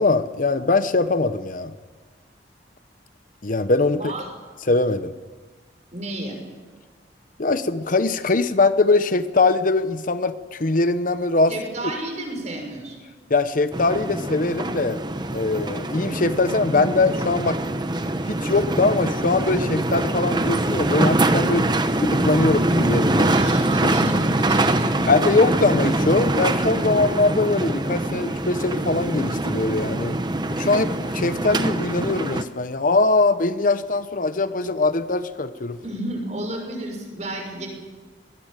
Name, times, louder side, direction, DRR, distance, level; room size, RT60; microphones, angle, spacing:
voice 1, 0.0-1.7 3.4-4.1 4.7-5.1 7.4-11.6 13.3-15.0 15.3-17.6 18.3-21.7 22.0-23.3 23.8-24.0 25.1-30.2 30.5-35.8, left 3 dB, 50° left, 12 dB, 0.9 m, -21 dB
voice 2, 3.9-4.2 5.9-6.4 11.5-13.0 23.2-25.2 35.8-37.7, right 1 dB, 40° right, 2 dB, 6.3 m, -31 dB
sound 1, 13.7-32.4, right 1 dB, 25° right, 1.0 m, -23 dB
22.0 x 18.5 x 9.0 m, 1.4 s
head